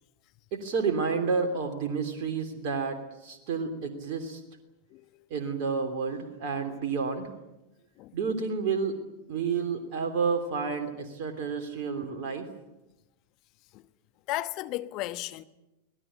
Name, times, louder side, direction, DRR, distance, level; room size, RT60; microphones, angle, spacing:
voice 1, 0.5-4.4 5.3-7.3 8.1-9.0 9.3-12.5, right 5 dB, 45° right, 3.1 m, -30 dB
voice 2, 4.9-5.3 8.0-8.2 12.0-12.1 13.7-13.9 14.3-15.4, left 17 dB, 40° left, 1.1 m, -35 dB
25.5 x 18.5 x 8.8 m
figure-of-eight pair, 90°, 0 cm